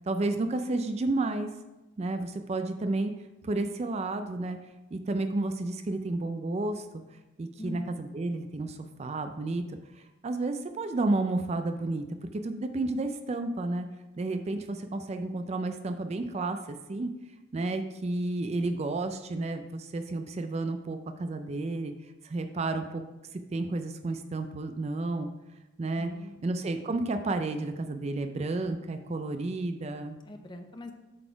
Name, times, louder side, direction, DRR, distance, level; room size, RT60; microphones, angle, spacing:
voice 1, 0.0-1.5 2.0-3.1 3.4-4.6 4.9-6.9 7.4-9.6 9.9-12.0 12.3-13.9 14.2-17.1 17.5-21.9 22.2-23.0 23.3-25.3 25.8-26.1 26.4-30.2, right 2 dB, 30° right, 7 dB, 0.4 m, -31 dB
voice 2, 7.6-8.1 26.0-26.4 30.2-30.9, left 2 dB, 20° left, 6 dB, 0.6 m, -43 dB
7.5 x 4.0 x 4.6 m, 1.0 s
head